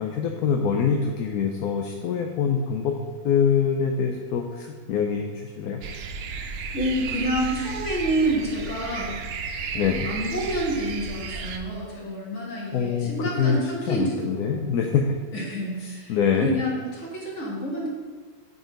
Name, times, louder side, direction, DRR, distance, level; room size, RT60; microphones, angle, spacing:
voice 1, 0.0-2.9 3.2-5.8 9.7-10.1 12.7-15.2 15.8-16.5, left 6 dB, 80° left, 2 dB, 1.1 m, -24 dB
sound 1, 5.8-11.6, right 5 dB, 65° right, 0.6 m, -33 dB
voice 2, 6.7-9.2 10.0-14.7 15.3-17.9, right 1 dB, 50° left, -3 dB, 2.0 m, -28 dB
8.4 x 3.9 x 5.0 m, 1.5 s
omnidirectional pair, 1.6 m